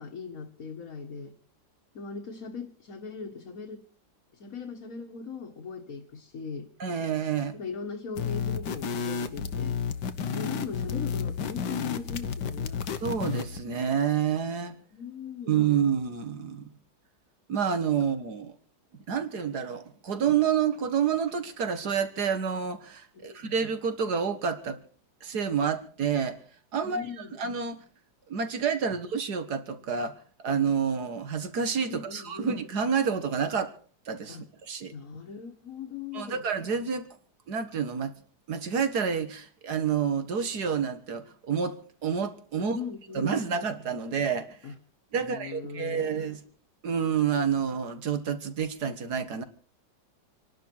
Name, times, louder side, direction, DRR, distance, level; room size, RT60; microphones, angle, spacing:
voice 1, 0.0-1.4 1.9-3.8 4.3-6.7 7.5-9.8 10.3-12.8 14.9-15.7 23.1-23.5 26.8-27.4 31.9-32.5 34.3-34.5 34.9-36.4 42.6-43.4 44.6-44.8 45.2-46.2, left 5 dB, 50° left, 1.9 m, -39 dB
voice 2, 6.8-7.6 13.0-14.8 15.5-16.7 17.5-18.5 19.1-24.8 25.2-26.4 26.7-27.8 28.3-30.1 30.4-33.7 34.1-34.9 36.1-37.1 37.5-38.1 38.5-42.8 43.1-44.6 45.1-46.4 46.8-49.4, right 7 dB, 60° right, 2.0 m, -28 dB
sound 1, 8.1-13.6, left 6 dB, 70° left, 1.7 m, -31 dB
27.0 x 11.5 x 4.6 m
omnidirectional pair, 2.0 m